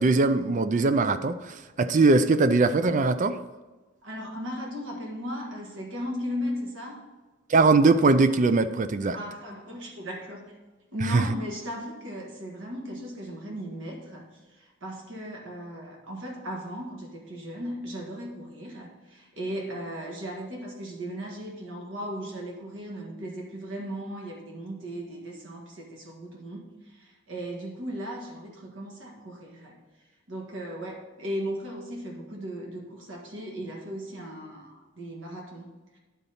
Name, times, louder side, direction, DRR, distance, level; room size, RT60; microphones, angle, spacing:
voice 1, 0.0-3.4 7.5-9.2 11.1-11.2, right 3 dB, 35° right, 12 dB, 0.3 m, -21 dB
voice 2, 4.0-7.0 9.1-10.5 10.9-29.8 30.3-36.0, equal, 65° right, 0 dB, 1.7 m, -37 dB
10.0 x 4.0 x 5.6 m, 1.2 s
head